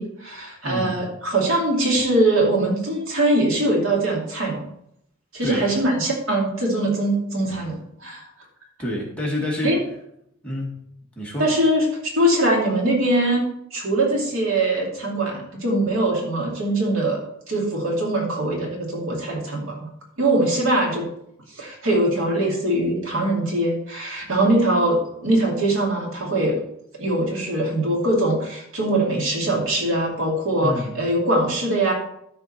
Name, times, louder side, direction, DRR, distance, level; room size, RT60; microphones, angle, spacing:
voice 1, 0.0-4.6 5.3-8.2 9.6-9.8 11.4-11.9 12.2-13.4 13.7-17.2 17.5-19.9 20.2-21.0 21.5-26.6 26.9-31.9, right 1 dB, 70° right, -1 dB, 2.7 m, -22 dB
voice 2, 0.6-1.0 5.4-5.7 8.8-9.8 10.4-10.9 11.2-11.5 30.6-30.9, left 1 dB, 5° left, -4 dB, 2.2 m, -28 dB
13.0 x 4.5 x 4.4 m, 0.74 s
head